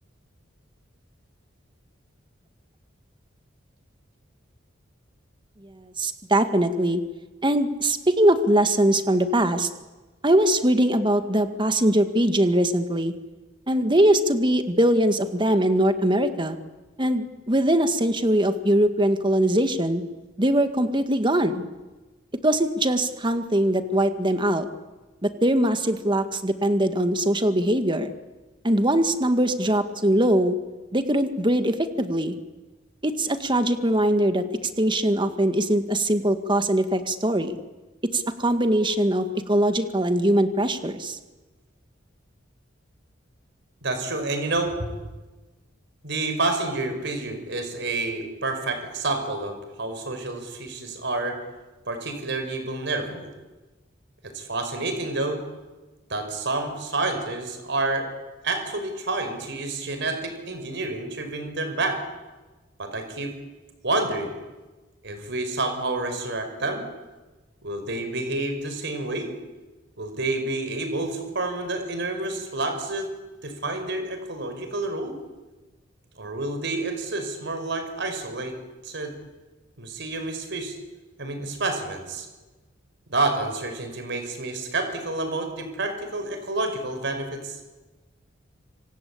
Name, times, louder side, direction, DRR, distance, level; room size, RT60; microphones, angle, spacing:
voice 1, 6.0-7.0 7.4-9.7 10.2-13.1 13.7-16.6 17.0-20.0 20.4-21.6 22.4-24.7 25.2-28.1 28.6-30.6 30.9-32.4 33.0-34.4 34.8-37.6 38.1-41.2, right 1 dB, 25° right, 8 dB, 1.9 m, -22 dB
voice 2, 43.8-44.9 46.0-51.4 51.9-53.3 54.2-55.4 56.1-58.1 58.4-62.0 62.8-63.3 63.8-64.4 65.0-66.8 67.6-69.3 70.0-73.1 73.4-75.1 76.2-78.6 78.8-79.1 79.8-80.8 81.2-82.3 83.1-87.6, right 2 dB, 65° right, 7 dB, 5.6 m, -29 dB
26.5 x 26.0 x 8.6 m, 1.2 s
head